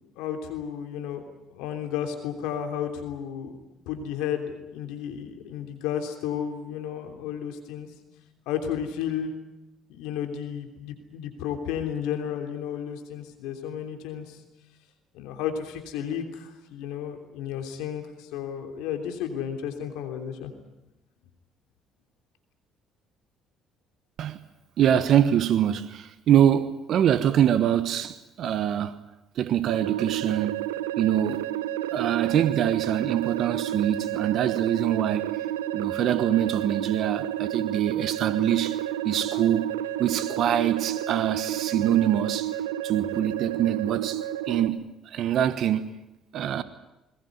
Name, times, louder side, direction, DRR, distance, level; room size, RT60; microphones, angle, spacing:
voice 1, 0.2-1.2 1.5-3.5 3.8-7.9 8.5-9.3 9.9-14.4 15.1-20.5, left 9 dB, 75° left, 3.2 m, -32 dB
voice 2, 24.8-29.0 29.4-30.7 31.0-31.4 31.9-35.4 35.7-39.7 40.0-42.5 42.8-46.0 46.3-46.6, right 10 dB, 60° right, 1.2 m, -24 dB
sound 1, 29.7-44.7, right 12 dB, 90° right, 0.8 m, -30 dB
21.5 x 20.0 x 9.6 m
hypercardioid pair, 60°, 0 cm